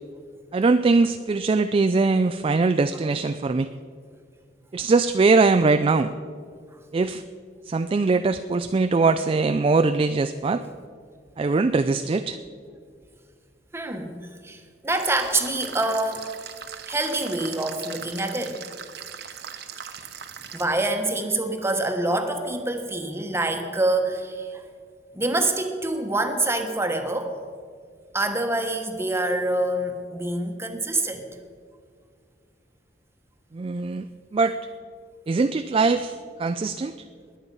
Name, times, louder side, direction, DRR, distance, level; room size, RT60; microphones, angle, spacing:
voice 1, 0.5-3.7 4.7-6.1 6.9-7.2 7.7-10.6 11.4-12.4 33.5-34.1 34.3-34.6 35.3-36.9, right 3 dB, 30° right, 10 dB, 0.3 m, -21 dB
voice 2, 13.7-14.2 14.4-16.3 16.9-18.6 20.5-24.6 25.1-27.3 28.1-31.2, right 2 dB, 15° right, 5 dB, 1.2 m, -26 dB
sound 1, 14.9-20.7, right 8 dB, 65° right, 1.0 m, -39 dB
21.0 x 8.8 x 5.4 m, 2.1 s
head